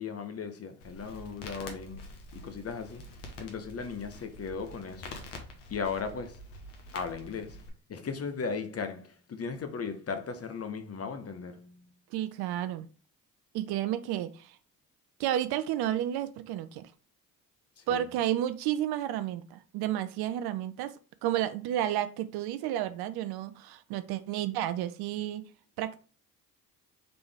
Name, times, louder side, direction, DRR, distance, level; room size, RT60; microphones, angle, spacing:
voice 1, 0.0-2.0 2.3-3.1 3.4-5.2 5.7-6.4 6.9-7.6 7.9-11.8 13.7-13.8 17.8-18.0, left 5 dB, 35° left, 0.9 m, -37 dB
Crackle, 0.8-7.7, left 1 dB, 70° left, 1.2 m, -46 dB
voice 2, 12.1-12.9 13.5-14.6 15.2-16.9 17.9-20.9 21.2-25.4 25.8-26.0, right 12 dB, 60° right, 0.6 m, -31 dB
3.9 x 3.5 x 3.4 m
hypercardioid pair, 50°, 43 cm